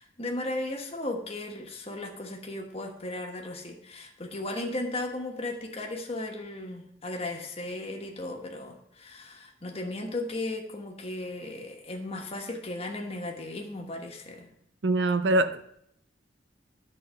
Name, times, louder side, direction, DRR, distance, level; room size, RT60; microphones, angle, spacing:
voice 1, 0.0-14.5, left 2 dB, 35° left, 1 dB, 1.3 m, -36 dB
voice 2, 14.8-15.7, right 2 dB, 75° right, 11 dB, 0.6 m, -24 dB
9.9 x 4.2 x 6.3 m, 0.75 s
head